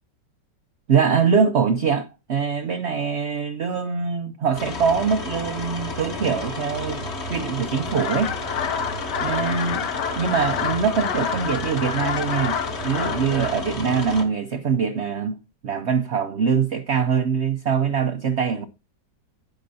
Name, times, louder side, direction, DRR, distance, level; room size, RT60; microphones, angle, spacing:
voice 1, 0.9-7.0 7.3-8.3 9.2-9.9 10.2-18.7, right 6 dB, 60° right, 0.7 m, -23 dB
sound 1, 4.5-14.2, left 2 dB, 40° left, 1.7 m, -32 dB
sound 2, 7.9-13.6, left 7 dB, 70° left, 1.5 m, -29 dB
12.0 x 8.9 x 2.7 m
omnidirectional pair, 1.9 m